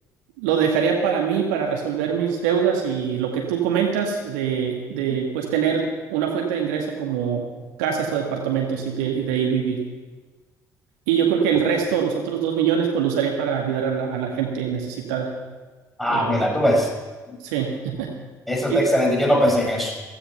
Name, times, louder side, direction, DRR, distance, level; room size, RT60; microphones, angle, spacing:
voice 1, 0.4-7.5 7.8-9.8 11.1-15.3 16.1-16.4 17.4-18.1 18.7-18.8, right 7 dB, 70° right, 1 dB, 2.0 m, -23 dB
voice 2, 16.0-16.9 18.5-19.9, equal, ahead, 0 dB, 5.6 m, -20 dB
16.0 x 15.5 x 5.6 m, 1.3 s
figure-of-eight pair, 50°, 9 cm